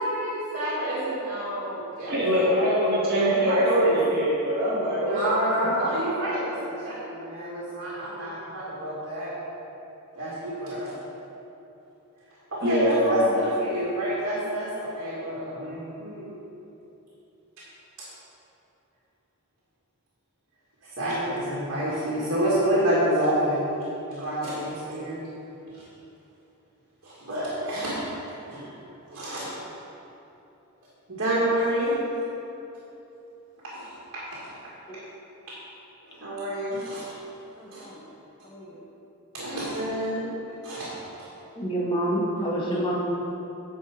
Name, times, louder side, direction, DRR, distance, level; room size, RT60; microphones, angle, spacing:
voice 1, 0.0-2.5 3.2-3.9 5.1-9.3 10.2-10.9 12.5-16.3 21.0-23.7 24.1-25.2 25.7-25.8 27.0-28.1 28.4-28.7 29.1-29.5 31.1-31.9 33.6-34.4 36.1-37.1 37.7-37.8 39.3-40.3 40.6-41.3, right 1 dB, 60° right, -8 dB, 1.9 m, -28 dB
voice 2, 2.1-5.4 12.6-13.2, equal, 45° right, -6 dB, 1.4 m, -23 dB
voice 3, 37.6-38.0 38.4-38.8 41.6-43.0, right 1 dB, 25° left, -5 dB, 1.6 m, -28 dB
9.7 x 5.7 x 4.9 m, 3.0 s
head